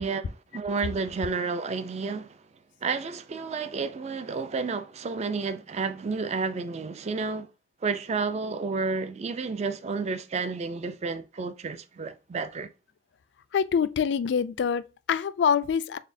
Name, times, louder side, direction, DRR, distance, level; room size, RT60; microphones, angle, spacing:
voice 1, 0.0-2.4 2.8-7.5 7.8-12.7, right 4 dB, 40° right, 0.4 m, -31 dB
voice 2, 13.5-16.0, left 7 dB, 70° left, 0.3 m, -25 dB
4.1 x 3.6 x 2.6 m
head